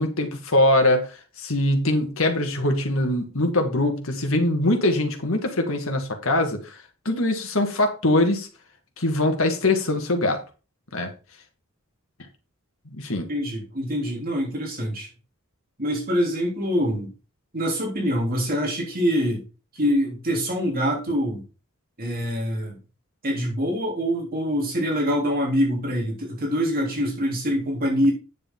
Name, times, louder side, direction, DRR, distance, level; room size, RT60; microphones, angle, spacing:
voice 1, 0.0-6.8 7.1-8.5 9.0-10.4 10.9-11.1 12.9-13.3, left 1 dB, 70° left, 5 dB, 2.0 m, -22 dB
voice 2, 13.3-15.1 15.8-17.1 17.5-19.4 19.7-21.4 22.0-22.8 23.2-28.1, equal, 45° right, -1 dB, 3.2 m, -25 dB
9.7 x 6.8 x 3.8 m, 0.33 s
head